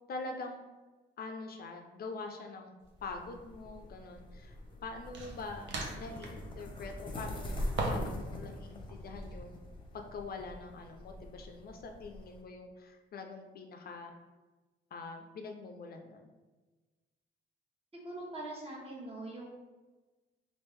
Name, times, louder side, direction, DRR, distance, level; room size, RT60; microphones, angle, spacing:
voice 1, 0.1-0.6 1.2-2.7 3.0-4.5 4.8-9.6 9.9-14.1 14.9-16.3, left 3 dB, 50° left, 4 dB, 0.4 m, -44 dB
sound 1, 2.8-3.0 5.1-6.5 7.8-8.3 8.5-9.4, right 2 dB, 65° right, 0.7 m, -38 dB
sound 2, 3.0-12.4, left 1 dB, 25° left, 0.7 m, -43 dB
voice 2, 18.0-19.5, right 2 dB, 30° right, -3 dB, 1.1 m, -42 dB
3.4 x 2.5 x 3.1 m, 1.2 s
cardioid pair, 90°, 20 cm